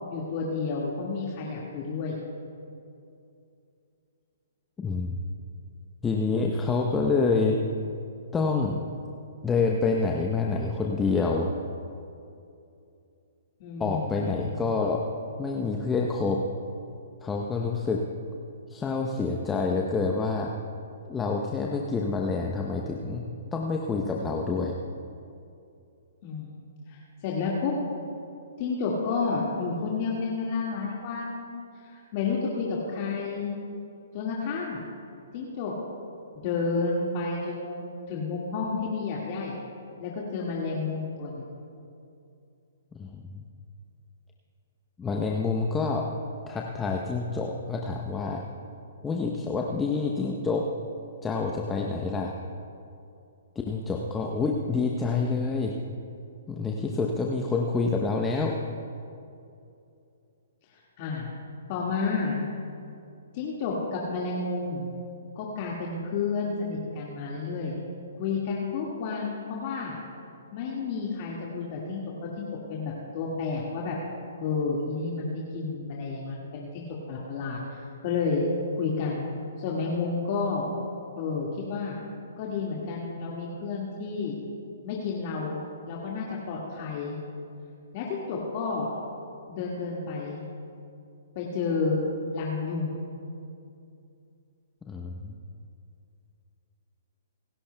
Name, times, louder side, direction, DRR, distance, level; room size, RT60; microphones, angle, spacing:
voice 1, 0.1-2.2 13.6-14.3 26.2-26.6 26.9-27.7 28.6-33.5 34.1-34.8 35.3-35.8 36.3-39.6 40.0-41.5 61.0-61.3 61.7-62.4 63.3-64.9 65.4-67.7 68.2-70.0 70.5-74.0 74.4-78.5 78.7-79.3 79.6-80.7 81.2-82.0 82.4-84.4 84.8-85.6 85.9-87.2 87.9-88.9 89.5-90.4 91.4-92.0 92.3-93.0, left 4 dB, 40° left, -4 dB, 1.9 m, -31 dB
voice 2, 4.8-5.2 6.0-7.6 8.3-8.8 9.4-11.5 13.8-15.0 15.4-16.5 17.2-18.0 18.7-20.5 21.1-23.3 23.5-24.8 42.9-43.4 45.0-46.1 46.5-48.4 49.0-50.7 51.2-52.3 53.7-55.8 56.5-58.6 94.9-95.3, left 4 dB, 15° left, 0 dB, 0.8 m, -27 dB
27.5 x 11.5 x 2.3 m, 2.6 s
hypercardioid pair, 125°, 0 cm